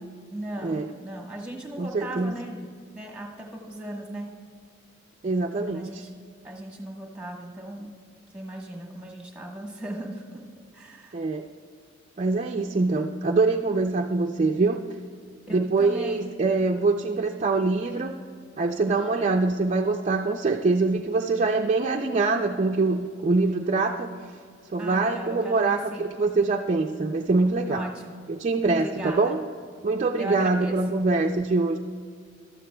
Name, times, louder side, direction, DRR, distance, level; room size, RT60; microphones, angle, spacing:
voice 1, 0.3-2.7 2.9-4.3 5.7-6.1 6.4-7.9 8.3-10.4 10.7-11.2 15.5-16.2 24.8-26.1 27.7-28.2 28.8-29.4 30.2-30.8, right 1 dB, 5° right, 0 dB, 1.2 m, -37 dB
voice 2, 1.8-2.3 5.2-6.0 11.1-11.4 12.2-14.8 15.5-18.2 18.6-24.1 24.7-27.8 28.3-29.4 29.8-31.8, right 3 dB, 35° right, 3 dB, 0.3 m, -24 dB
14.5 x 12.0 x 2.2 m, 2.1 s
head